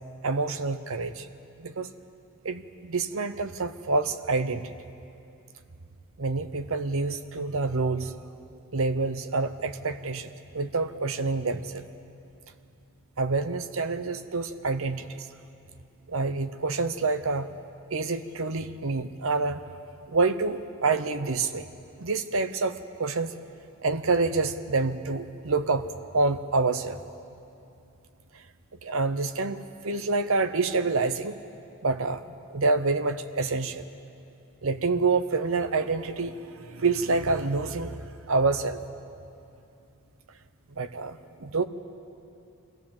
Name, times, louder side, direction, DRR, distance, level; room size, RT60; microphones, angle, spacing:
voice 1, 0.2-1.3 1.6-1.9 2.4-4.7 6.2-8.2 8.7-11.8 13.2-15.3 16.1-17.5 17.9-19.6 20.1-21.7 22.0-23.4 23.8-25.9 26.1-27.0 28.8-31.4 31.8-33.8 34.6-38.8 40.8-41.6, right 3 dB, 65° right, 10 dB, 0.9 m, -27 dB
24.5 x 16.5 x 7.4 m, 2.6 s
head